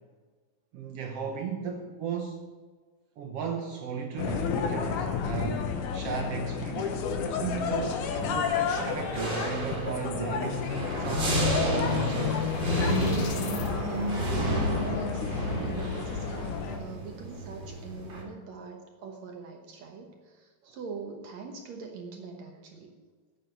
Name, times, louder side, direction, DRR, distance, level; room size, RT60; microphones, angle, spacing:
voice 1, 0.7-2.4 3.2-10.7 10.9-12.5 20.6-20.7, right 5 dB, 80° right, 3 dB, 1.3 m, -36 dB
sound 1, 4.2-16.8, left 6 dB, 70° left, 2.4 m, -31 dB
sound 2, 8.5-18.2, right 1 dB, 35° right, 2.7 m, -32 dB
sound 3, 11.5-13.7, left 10 dB, 90° left, 2.6 m, -45 dB
voice 2, 13.9-23.0, right 4 dB, 65° right, 3 dB, 2.0 m, -43 dB
9.0 x 8.1 x 8.9 m, 1.4 s
omnidirectional pair, 4.0 m